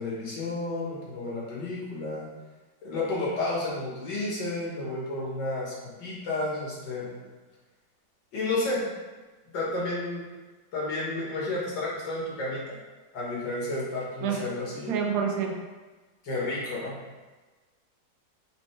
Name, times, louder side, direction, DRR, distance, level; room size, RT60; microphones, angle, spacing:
voice 1, 0.0-2.3 2.8-7.1 8.3-8.9 9.4-10.2 10.7-12.8 13.1-14.9 16.2-17.0, left 2 dB, 85° left, -5 dB, 2.0 m, -31 dB
voice 2, 14.9-15.6, right 6 dB, 75° right, 2 dB, 1.1 m, -27 dB
5.2 x 3.2 x 3.2 m, 1.3 s
omnidirectional pair, 1.9 m